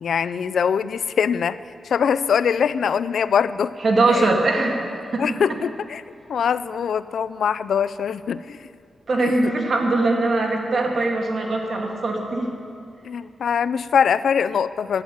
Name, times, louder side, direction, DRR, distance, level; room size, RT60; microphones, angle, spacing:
voice 1, 0.0-1.6 1.8-3.7 4.1-4.3 5.2-6.0 6.3-8.7 9.2-9.5 13.0-15.0, left 7 dB, 75° left, 16 dB, 0.3 m, -22 dB
voice 2, 3.8-4.8 5.1-5.4 9.1-12.5, right 2 dB, 45° right, 1 dB, 2.1 m, -21 dB
11.5 x 8.8 x 9.0 m, 2.3 s
wide cardioid pair, 110°, 0 cm